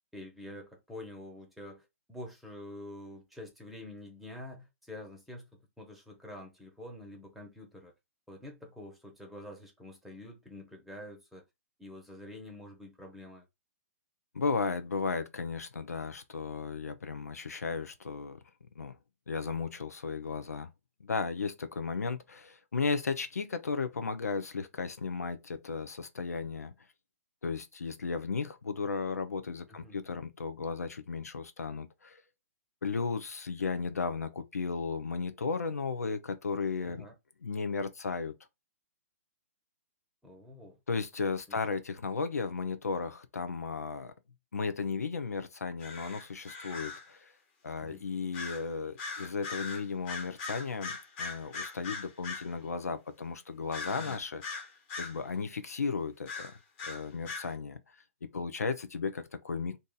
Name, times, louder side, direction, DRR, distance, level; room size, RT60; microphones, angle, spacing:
voice 1, 0.1-5.5 5.8-7.9 8.3-11.4 11.8-13.4 29.7-30.0 36.9-37.1 40.2-40.8 41.5-41.6 47.8-48.0 53.9-54.2, left 1 dB, ahead, 0.9 m, -47 dB
voice 2, 14.3-18.4 18.8-19.0 19.3-20.7 21.0-26.7 27.4-32.2 32.8-37.0 37.4-38.3 40.9-44.1 44.5-47.3 47.6-54.4 55.0-56.5 56.9-57.8 58.2-59.8, left 4 dB, 85° left, 0.5 m, -35 dB
sound 1, 45.8-47.1 48.3-48.7 49.0-52.5 53.7-55.2 56.3-57.5, left 4 dB, 35° left, 1.4 m, -40 dB
2.7 x 2.5 x 3.9 m
hypercardioid pair, 130°, 8 cm